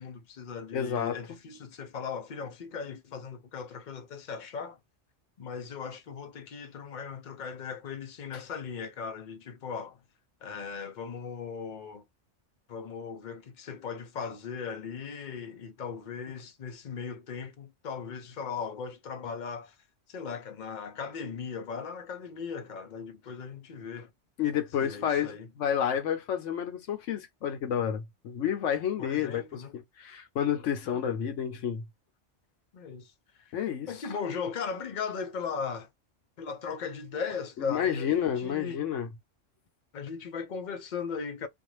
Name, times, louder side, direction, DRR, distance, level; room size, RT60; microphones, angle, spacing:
voice 1, 0.0-4.8 5.4-10.0 10.4-12.0 12.7-19.8 20.1-24.1 24.8-25.5 29.0-29.7 30.9-31.0 32.7-33.1 33.4-33.5 33.9-35.9 36.4-38.8 39.9-41.5, left 6 dB, 50° left, 0.6 m, -38 dB
voice 2, 0.7-1.4 8.3-8.4 24.4-25.3 25.6-29.4 30.0-31.8 33.5-34.1 37.6-39.1, left 9 dB, 80° left, 1.0 m, -30 dB
2.5 x 2.3 x 3.0 m
omnidirectional pair, 1.3 m